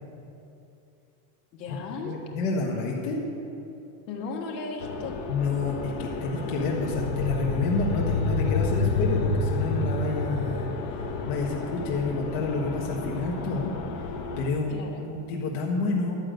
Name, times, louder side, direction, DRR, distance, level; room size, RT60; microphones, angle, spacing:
voice 1, 1.5-2.1 4.1-5.1 14.7-15.0, left 4 dB, 80° left, 1 dB, 1.7 m, -35 dB
voice 2, 2.0-3.2 5.3-10.7 11.3-13.7 14.4-16.2, left 3 dB, 60° left, -1 dB, 1.4 m, -29 dB
sound 1, 4.8-14.5, left 3 dB, 45° left, 1.0 m, -30 dB
11.0 x 5.1 x 8.0 m, 2.8 s
supercardioid pair, 165°, 50 cm